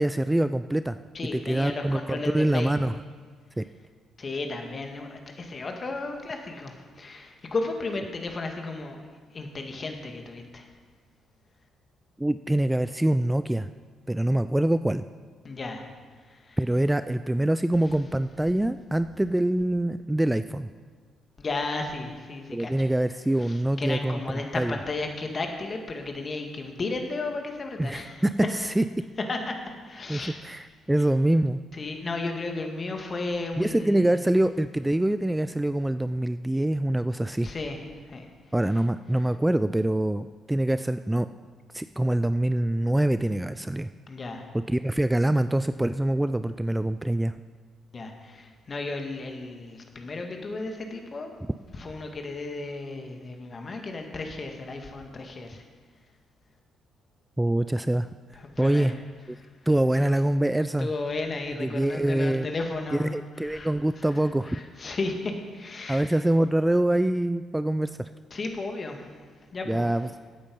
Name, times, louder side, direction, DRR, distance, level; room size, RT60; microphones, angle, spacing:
voice 1, 0.0-1.0 1.3-2.9 3.6-3.7 12.2-13.7 14.1-15.0 16.6-20.7 22.5-24.2 24.6-24.8 27.8-28.3 28.8-28.9 30.1-31.6 33.6-37.5 38.5-41.3 41.7-43.9 44.5-47.4 57.4-58.1 58.6-58.9 59.7-60.9 61.6-62.5 63.0-64.6 65.9-68.1 69.7-70.2, right 1 dB, 10° right, 12 dB, 0.4 m, -25 dB
voice 2, 1.1-2.7 4.2-9.0 9.3-10.7 15.4-15.9 16.3-16.6 21.4-22.9 23.4-28.2 29.3-29.6 29.8-30.4 31.7-34.2 37.4-38.3 44.1-44.4 47.9-51.3 51.7-55.6 58.3-59.0 59.4-59.5 60.8-63.7 64.0-66.1 68.3-69.2 69.5-69.9, left 3 dB, 40° left, 4 dB, 2.0 m, -34 dB
14.0 x 8.9 x 5.4 m, 1.5 s
hypercardioid pair, 45°, 0 cm